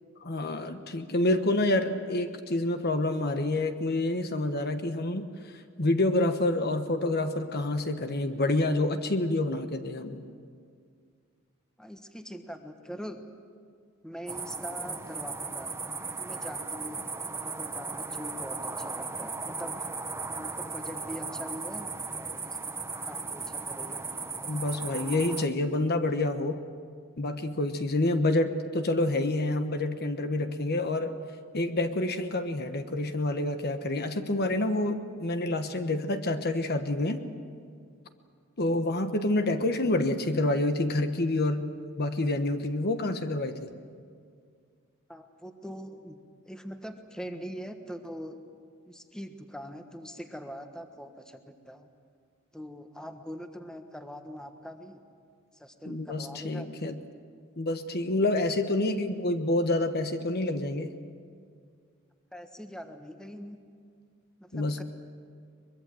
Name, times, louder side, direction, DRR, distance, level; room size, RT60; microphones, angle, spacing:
voice 1, 0.2-5.5 5.8-10.2 24.5-26.6 27.2-31.2 31.5-37.2 38.6-41.7 42.0-43.7 55.9-57.0 57.6-61.0 64.5-64.8, left 2 dB, 50° left, 8 dB, 1.2 m, -28 dB
voice 2, 11.8-13.2 14.0-15.7 16.2-17.0 17.4-19.7 20.3-21.9 22.1-22.4 23.0-24.1 45.1-46.2 46.4-48.4 48.8-51.9 52.5-55.0 55.5-56.7 62.3-63.6 64.4-64.8, equal, 5° left, 6 dB, 1.3 m, -42 dB
sound 1, 14.3-25.5, right 4 dB, 10° right, 1.0 m, -36 dB
23.0 x 22.0 x 7.8 m, 2.1 s
head